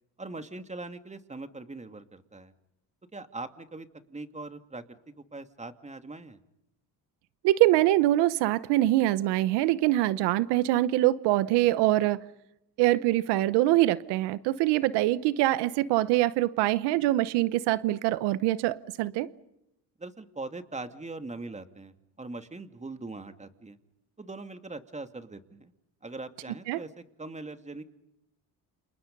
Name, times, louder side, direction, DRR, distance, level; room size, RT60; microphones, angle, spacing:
voice 1, 0.2-2.5 3.1-6.4 20.0-23.8 24.2-25.7 26.0-28.0, right 2 dB, 15° right, 2.4 m, -41 dB
voice 2, 7.4-12.2 12.8-19.3 26.7-26.8, right 16 dB, 85° right, 1.0 m, -24 dB
29.0 x 28.0 x 5.4 m
supercardioid pair, 85°, 40 cm